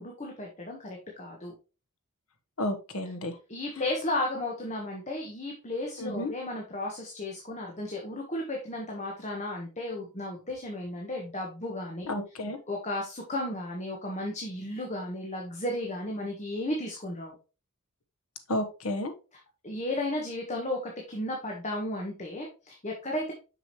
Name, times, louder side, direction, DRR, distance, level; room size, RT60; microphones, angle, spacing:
voice 1, 0.0-1.5 3.5-12.1 12.7-17.3 19.6-23.3, left 1 dB, 35° left, 0 dB, 1.4 m, -34 dB
voice 2, 2.6-3.3 6.0-6.3 12.1-12.6 18.5-19.1, left 1 dB, 70° left, 6 dB, 1.2 m, -31 dB
6.5 x 6.2 x 3.1 m, 0.32 s
head